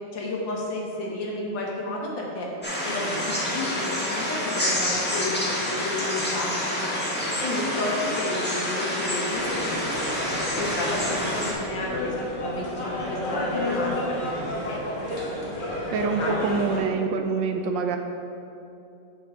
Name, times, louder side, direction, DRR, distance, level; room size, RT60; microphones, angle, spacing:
voice 1, 0.1-2.5 2.8-7.0 7.4-10.0 10.5-12.2 12.4-14.8 15.2-15.5 15.9-16.4, left 2 dB, 70° left, -2 dB, 1.9 m, -32 dB
sound 1, 2.6-11.5, left 1 dB, 5° left, 1.2 m, -28 dB
sound 2, 9.3-16.8, left 1 dB, 30° left, 1.2 m, -31 dB
voice 2, 15.9-18.0, right 5 dB, 75° right, 5 dB, 1.2 m, -25 dB
8.4 x 6.8 x 3.7 m, 2.7 s
omnidirectional pair, 2.1 m